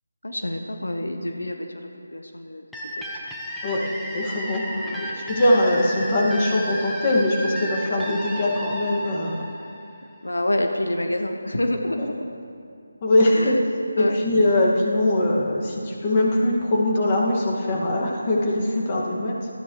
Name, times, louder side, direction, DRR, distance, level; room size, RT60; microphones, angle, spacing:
voice 1, 0.2-3.0 4.7-5.1 10.2-12.1 13.3-13.6 14.0-14.2, left 1 dB, 85° left, 4 dB, 1.1 m, -28 dB
sound 1, 2.7-10.3, equal, ahead, 1.0 m, -33 dB
voice 2, 3.6-4.7 5.0-9.5 11.9-12.1 13.0-13.6 14.0-19.5, left 1 dB, 30° left, -3 dB, 2.1 m, -22 dB
20.0 x 13.5 x 3.3 m, 2.4 s
figure-of-eight pair, 160°, 0 cm